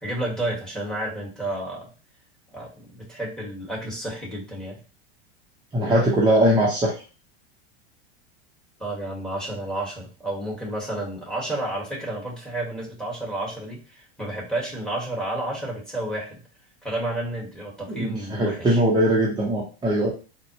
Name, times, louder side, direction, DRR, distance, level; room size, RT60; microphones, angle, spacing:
voice 1, 0.0-1.9 2.5-4.8 5.8-6.1 8.8-16.4 16.8-18.8, right 1 dB, ahead, -3 dB, 1.3 m, -31 dB
voice 2, 5.7-6.9 17.9-20.1, right 1 dB, 15° right, -4 dB, 0.7 m, -21 dB
4.0 x 2.2 x 2.7 m, 0.34 s
supercardioid pair, 120°, 31 cm